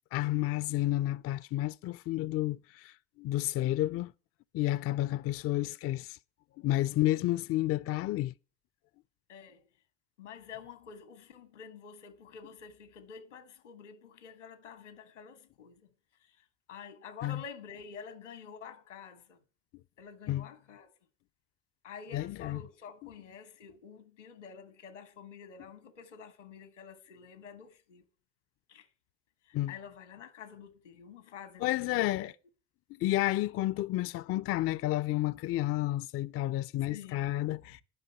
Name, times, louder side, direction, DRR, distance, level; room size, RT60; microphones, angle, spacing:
voice 1, 0.1-4.1 4.5-6.2 6.6-8.3 17.2-17.4 20.3-20.5 22.1-22.6 29.5-29.7 31.6-32.3 33.0-37.8, left 15 dB, 40° left, 0.4 m, -31 dB
voice 2, 9.3-9.6 10.2-15.9 16.2-16.4 16.7-19.4 20.0-20.9 21.8-28.0 28.7-28.9 29.5-32.3 35.2-35.4 36.9-37.6, left 6 dB, 90° left, 1.4 m, -49 dB
11.0 x 5.6 x 6.7 m
hypercardioid pair, 60°, 35 cm